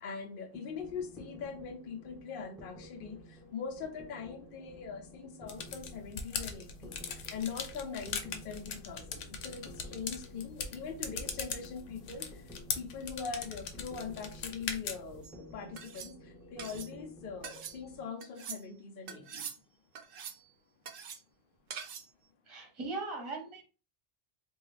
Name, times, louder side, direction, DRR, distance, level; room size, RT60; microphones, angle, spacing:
voice 1, 0.0-3.2 3.5-6.9 7.3-8.2 8.4-9.0 9.4-12.3 12.8-16.1 16.5-19.2, left 6 dB, 55° left, 4 dB, 0.8 m, -41 dB
sound 1, 0.5-18.0, left 1 dB, ahead, 0.4 m, -53 dB
sound 2, 5.5-15.2, left 6 dB, 85° left, 1.0 m, -41 dB
sound 3, 15.2-15.4 15.8-16.1 16.6-16.9 17.4-17.8 18.2-18.6 19.1-19.6 20.0-20.4 20.9-21.2 21.7-22.1, right 7 dB, 60° right, 0.6 m, -44 dB
voice 2, 22.5-23.6, right 3 dB, 25° right, 2 dB, 0.9 m, -39 dB
3.5 x 2.3 x 3.2 m, 0.34 s
omnidirectional pair, 1.2 m